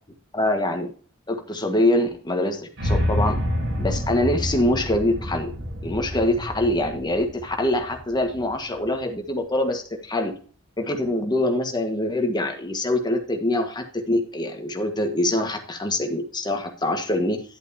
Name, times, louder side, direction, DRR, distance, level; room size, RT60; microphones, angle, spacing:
voice 1, 0.3-0.9 1.3-3.4 3.8-5.5 5.8-10.3 10.8-17.4, left 1 dB, 20° left, 4 dB, 1.5 m, -24 dB
sound 1, 2.8-8.9, left 1 dB, 90° right, 4.6 m, -28 dB
11.0 x 7.9 x 2.8 m, 0.42 s
head